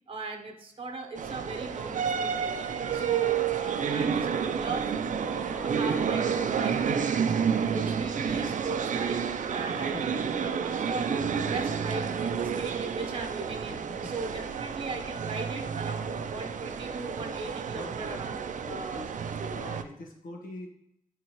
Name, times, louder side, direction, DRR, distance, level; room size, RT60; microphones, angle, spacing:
voice 1, 0.1-9.2 9.5-19.1 19.4-19.6, right 3 dB, 40° right, 3 dB, 0.9 m, -39 dB
sound 1, 1.2-19.8, right 7 dB, 65° right, 0.5 m, -30 dB
voice 2, 9.7-10.8 13.7-14.5 17.7-19.1 19.5-20.7, left 2 dB, 85° left, 0 dB, 1.4 m, -44 dB
9.6 x 3.6 x 3.0 m, 0.78 s
wide cardioid pair, 120°, 14 cm